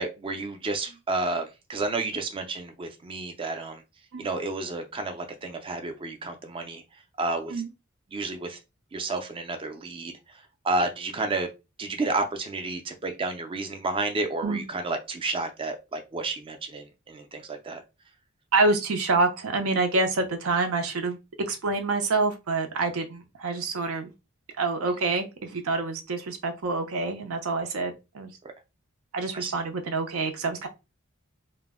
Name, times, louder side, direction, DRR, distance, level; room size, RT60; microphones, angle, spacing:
voice 1, 0.0-3.8 4.2-6.8 7.2-7.6 8.1-8.6 8.9-11.5 11.8-17.8 29.3-29.5, right 3 dB, 25° right, 5 dB, 0.4 m, -31 dB
voice 2, 18.5-21.2 21.5-24.1 24.6-28.3 29.1-30.7, right 3 dB, 90° right, 6 dB, 0.6 m, -27 dB
2.1 x 2.0 x 3.4 m, 0.26 s
head